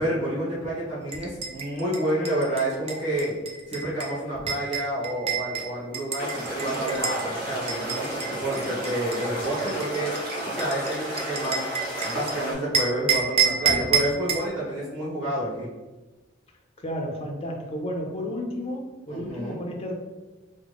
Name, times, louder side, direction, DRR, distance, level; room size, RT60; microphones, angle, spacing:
voice 1, 0.0-3.3 3.7-10.1 10.4-11.6 12.0-15.7 19.1-19.6, right 1 dB, 70° right, -8 dB, 1.4 m, -29 dB
sound 1, 1.1-7.3 7.7-12.3 12.7-14.5, right 6 dB, 30° right, 0.4 m, -29 dB
sound 2, 6.2-12.5, equal, 50° right, 1.4 m, -32 dB
voice 2, 16.8-19.9, equal, 30° left, 1 dB, 0.5 m, -32 dB
3.6 x 2.0 x 3.4 m, 1.2 s
head